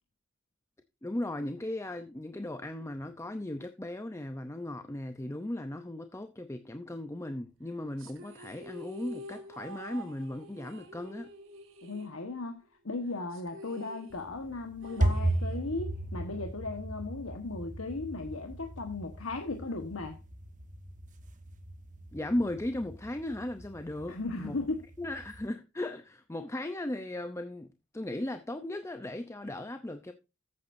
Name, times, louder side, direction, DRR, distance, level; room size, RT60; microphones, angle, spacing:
voice 1, 1.0-11.3 22.1-24.6 25.0-27.7 27.9-30.1, left 1 dB, 15° left, 0.6 m, -37 dB
sound 1, 8.0-12.6 12.9-13.0 13.3-16.0, equal, 70° right, 2.8 m, -48 dB
voice 2, 11.8-12.6 12.8-20.2 24.1-24.8, left 3 dB, 80° left, 1.4 m, -36 dB
sound 2, 14.1-25.5, right 1 dB, 40° right, 1.1 m, -36 dB
14.0 x 8.6 x 2.7 m
head